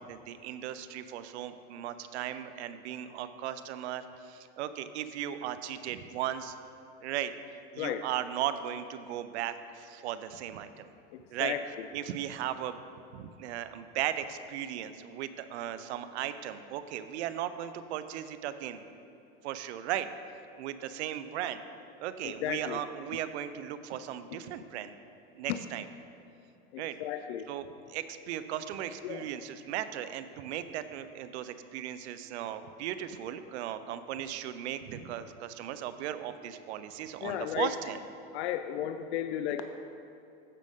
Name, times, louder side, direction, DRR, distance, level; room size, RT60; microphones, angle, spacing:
voice 1, 0.0-6.5 7.0-7.3 7.7-10.9 11.3-11.6 11.9-12.8 13.1-18.8 19.4-20.1 20.6-21.6 22.0-24.9 25.3-25.8 26.8-27.0 27.5-38.0, right 11 dB, 85° right, 12 dB, 0.6 m, -37 dB
voice 2, 22.2-22.8 25.5-25.6 26.7-27.5 29.0-29.3 37.2-37.7 38.3-39.7, left 11 dB, 80° left, 8 dB, 0.5 m, -34 dB
14.0 x 5.2 x 3.6 m, 2.7 s
supercardioid pair, 135°, 33 cm